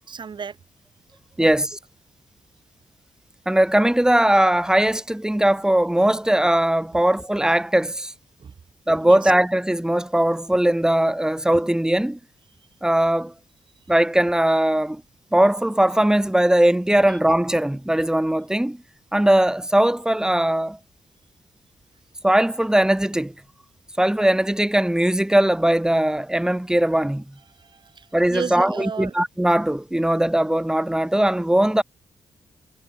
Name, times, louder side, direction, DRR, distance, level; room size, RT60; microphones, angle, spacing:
voice 1, 0.1-0.6 1.4-1.5 8.4-8.5 9.0-9.3 17.0-17.1 27.6-29.1, right 6 dB, 55° right, 2.9 m, -33 dB
voice 2, 1.4-1.8 3.5-8.1 8.9-12.2 12.8-13.3 13.9-15.0 15.3-18.8 19.1-20.8 22.2-23.3 24.0-27.2 28.1-31.8, right 1 dB, 5° right, 2.8 m, -19 dB
cardioid pair, 70°, 9 cm